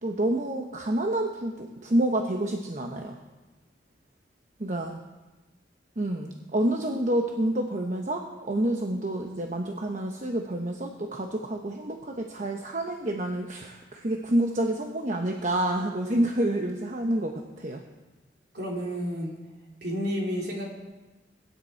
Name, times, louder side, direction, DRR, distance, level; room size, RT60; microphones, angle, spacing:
voice 1, 0.0-3.2 4.6-5.0 6.0-17.8, right 1 dB, 45° right, 3 dB, 1.0 m, -28 dB
voice 2, 18.5-19.4 19.8-20.6, equal, 60° right, -2 dB, 3.4 m, -30 dB
22.5 x 9.9 x 4.5 m, 1.2 s
head